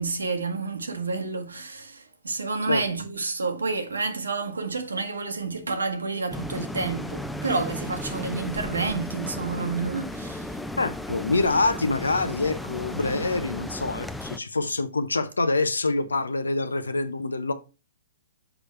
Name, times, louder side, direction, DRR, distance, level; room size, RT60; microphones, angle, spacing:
voice 1, 0.0-10.6, right 4 dB, 85° right, 1.2 m, -29 dB
sound 1, 6.3-14.4, left 1 dB, 5° left, 0.4 m, -35 dB
voice 2, 10.8-17.5, left 3 dB, 85° left, 0.8 m, -26 dB
6.2 x 5.0 x 3.2 m
figure-of-eight pair, 125°, 0 cm